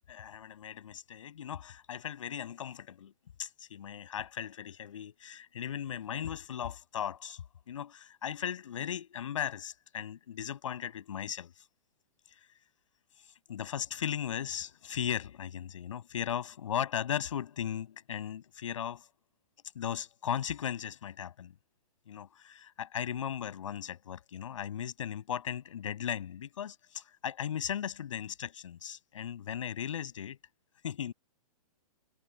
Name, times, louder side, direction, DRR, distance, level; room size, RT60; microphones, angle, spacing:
voice 1, 0.1-3.1 3.4-11.5 13.5-19.1 19.7-21.5 22.1-30.4 30.8-31.1, left 9 dB, 60° left, 7.7 m, -37 dB
hypercardioid pair, 180°, 19 cm